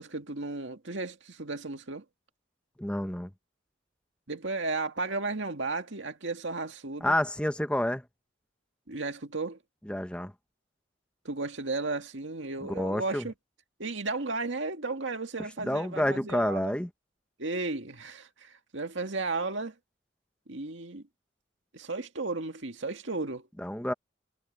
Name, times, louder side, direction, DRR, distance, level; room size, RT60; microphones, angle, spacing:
voice 1, 0.0-2.0 4.3-7.1 8.9-9.6 11.2-13.3 13.8-16.8 17.4-19.7 20.5-21.0 21.7-23.5, right 3 dB, 75° right, 2.0 m, -34 dB
voice 2, 2.8-3.3 7.0-8.0 9.9-10.3 12.6-13.3 15.6-16.9 23.6-23.9, left 1 dB, 5° left, 0.8 m, -29 dB
head